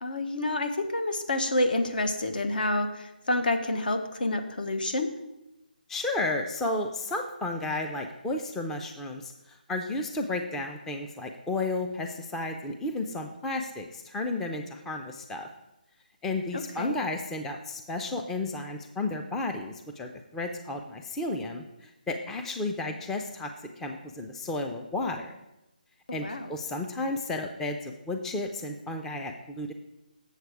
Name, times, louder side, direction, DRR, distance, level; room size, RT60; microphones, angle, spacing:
voice 1, 0.0-5.1 16.5-17.0 26.2-26.5, left 2 dB, 70° left, 7 dB, 1.0 m, -28 dB
voice 2, 5.9-15.5 16.2-23.5 23.8-25.3 26.1-29.7, left 2 dB, 5° left, 4 dB, 0.4 m, -33 dB
7.9 x 6.9 x 4.8 m, 0.95 s
figure-of-eight pair, 155°, 5 cm